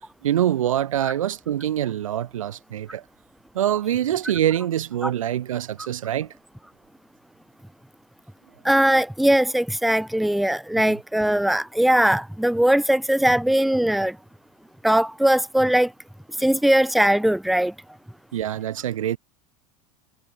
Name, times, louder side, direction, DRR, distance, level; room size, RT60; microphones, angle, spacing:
voice 1, 0.2-3.0 3.6-6.3 18.3-19.2, right 11 dB, 90° right, 1.7 m, -24 dB
voice 2, 8.6-14.2 14.8-15.9 16.4-17.7, right 1 dB, ahead, 0.4 m, -20 dB
hypercardioid pair, 90°, 17 cm